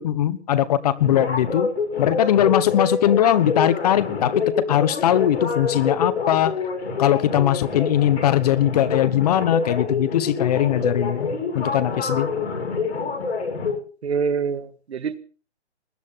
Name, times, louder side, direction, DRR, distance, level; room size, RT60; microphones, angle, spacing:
voice 1, 0.0-1.7 2.0-6.5 7.0-11.3 11.5-12.3, left 11 dB, 35° left, 16 dB, 1.2 m, -20 dB
sound 1, 1.0-13.8, left 4 dB, 70° left, 7.3 m, -27 dB
voice 2, 14.0-15.2, right 6 dB, 70° right, 14 dB, 1.5 m, -25 dB
20.5 x 11.0 x 5.8 m, 0.40 s
hypercardioid pair, 160°, 34 cm